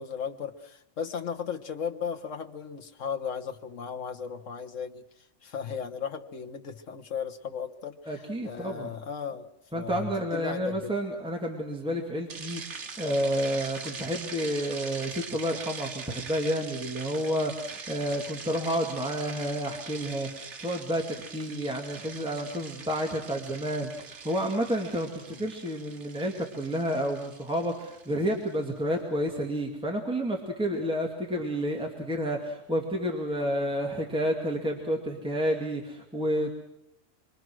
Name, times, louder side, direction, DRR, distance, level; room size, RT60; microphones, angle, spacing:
voice 1, 0.0-5.0 5.4-9.5 9.7-11.0 17.0-17.2 25.3-25.4, left 7 dB, 80° left, 5 dB, 1.6 m, -36 dB
voice 2, 8.1-8.9 9.7-36.5, equal, 5° right, 0 dB, 2.2 m, -30 dB
sound 1, 12.3-28.6, right 5 dB, 70° right, 1.5 m, -42 dB
26.0 x 23.0 x 6.2 m, 0.80 s
omnidirectional pair, 1.3 m